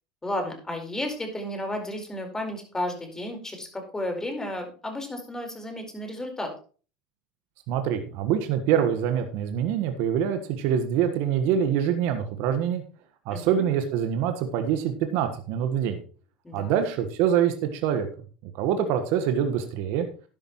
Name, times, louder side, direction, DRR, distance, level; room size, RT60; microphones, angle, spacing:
voice 1, 0.2-6.5 13.3-13.6 16.4-16.8, left 1 dB, 15° left, 4 dB, 4.4 m, -33 dB
voice 2, 7.7-12.8 13.2-16.0 16.5-18.1 18.4-20.1, right 9 dB, 60° right, 7 dB, 1.4 m, -25 dB
13.0 x 10.5 x 3.1 m, 0.38 s
hypercardioid pair, 80°, 4 cm